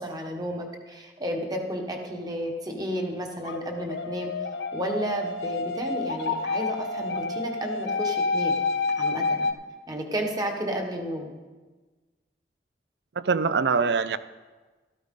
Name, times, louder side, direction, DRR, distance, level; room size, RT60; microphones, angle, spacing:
voice 1, 0.0-4.3 4.7-8.6 9.0-9.5 9.9-11.3, equal, 20° right, 2 dB, 1.3 m, -32 dB
sound 1, 3.5-9.5, left 3 dB, 70° left, 0.7 m, -29 dB
voice 2, 13.2-14.2, right 5 dB, 70° right, 14 dB, 0.5 m, -23 dB
13.0 x 13.0 x 3.8 m, 1.3 s
head